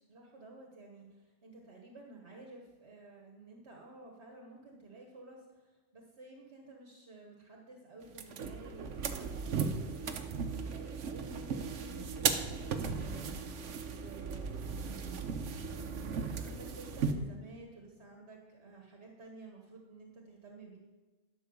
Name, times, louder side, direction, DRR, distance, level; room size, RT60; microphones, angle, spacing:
voice 1, 0.0-15.2 16.2-20.8, right 3 dB, 65° right, 0 dB, 1.5 m, -53 dB
sound 1, 8.1-17.1, right 5 dB, 90° right, 1.2 m, -36 dB
11.5 x 6.0 x 7.0 m, 1.3 s
omnidirectional pair, 1.2 m